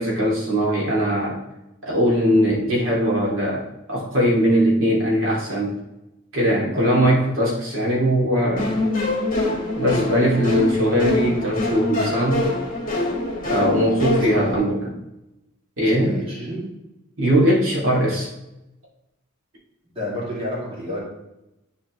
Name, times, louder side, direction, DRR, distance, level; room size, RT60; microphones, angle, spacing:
voice 1, 0.0-1.4 1.8-5.8 6.3-8.8 9.8-12.5 13.4-14.9 15.8-16.2 17.2-18.3, equal, 75° right, -5 dB, 2.3 m, -20 dB
sound 1, 8.6-14.6, left 2 dB, 40° left, 2.3 m, -24 dB
voice 2, 14.1-14.6 15.8-16.6 19.9-21.0, left 1 dB, 25° right, -6 dB, 2.4 m, -31 dB
10.5 x 4.2 x 3.0 m, 0.92 s
head